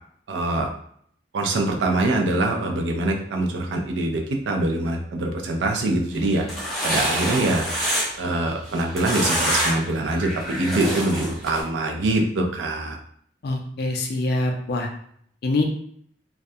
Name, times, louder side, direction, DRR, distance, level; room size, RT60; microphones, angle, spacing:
voice 1, 0.3-0.7 1.3-6.4 6.8-7.7 8.2-13.0, right 2 dB, 80° right, 2 dB, 0.5 m, -24 dB
sound 1, 6.2-8.3 8.7-9.9 10.2-11.6, equal, ahead, 0.7 m, -26 dB
voice 2, 13.4-14.9 15.4-15.6, left 2 dB, 60° left, 3 dB, 0.4 m, -24 dB
2.3 x 2.1 x 2.6 m, 0.65 s
head